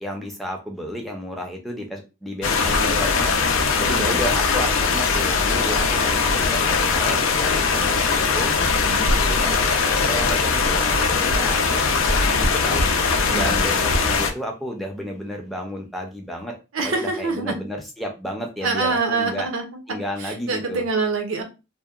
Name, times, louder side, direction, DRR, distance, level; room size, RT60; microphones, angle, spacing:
voice 1, 0.0-3.3 3.8-8.6 9.3-12.9 13.3-16.6 16.8-19.5 19.9-20.9, equal, ahead, 1 dB, 0.5 m, -32 dB
sound 1, 2.4-14.3, left 4 dB, 75° left, 0.4 m, -20 dB
voice 2, 3.7-4.1 8.7-9.1 13.1-13.5 16.7-17.5 18.6-19.8 20.2-21.4, right 3 dB, 75° right, 4 dB, 0.6 m, -26 dB
sound 2, 10.5-10.6 10.9-11.0 11.3-11.4 11.7-11.8 12.0-12.5 12.8-12.9 13.1-13.2 13.5-13.6 13.9-14.0, equal, 35° left, 0.7 m, -25 dB
2.7 x 2.1 x 2.3 m, 0.29 s
head